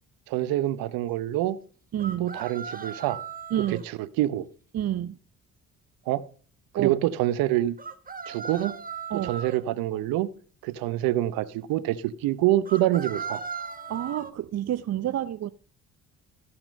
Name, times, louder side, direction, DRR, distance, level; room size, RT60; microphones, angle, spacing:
voice 1, 0.3-1.6 2.2-3.2 3.6-4.5 6.1-6.2 6.7-7.7 8.3-8.7 9.1-10.3 10.6-13.4, right 14 dB, 75° right, 0.8 m, -26 dB
voice 2, 1.9-2.3 3.5-3.8 4.7-5.1 6.8-6.9 9.1-9.3 13.9-15.5, right 11 dB, 45° right, 0.6 m, -28 dB
sound 1, 2.0-3.8 7.8-9.6 12.7-14.3, right 5 dB, 25° right, 1.4 m, -37 dB
14.0 x 5.9 x 5.2 m
supercardioid pair, 60°, 35 cm